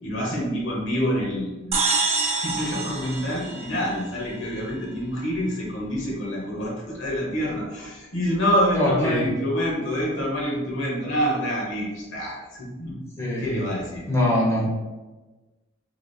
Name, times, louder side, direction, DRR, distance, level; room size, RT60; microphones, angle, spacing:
voice 1, 0.0-1.8 2.1-12.9 13.4-14.0, equal, 65° left, -3 dB, 1.3 m, -27 dB
sound 1, 1.7-4.3, right 3 dB, 30° right, 0.6 m, -26 dB
voice 2, 8.7-9.3 13.2-13.7 14.1-14.7, left 1 dB, 15° left, -6 dB, 1.2 m, -23 dB
4.7 x 3.4 x 2.2 m, 1.2 s
head